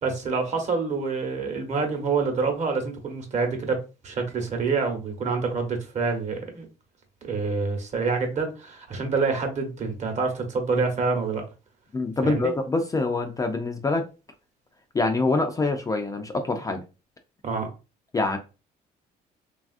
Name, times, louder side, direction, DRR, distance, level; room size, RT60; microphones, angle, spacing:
voice 1, 0.0-6.7 7.2-11.4 12.2-12.5 17.4-17.7, right 4 dB, 45° right, 0.9 m, -27 dB
voice 2, 11.9-14.1 14.9-16.8 18.1-18.4, left 3 dB, 20° left, 0.3 m, -25 dB
3.3 x 2.4 x 2.4 m
cardioid pair, 110°, 17 cm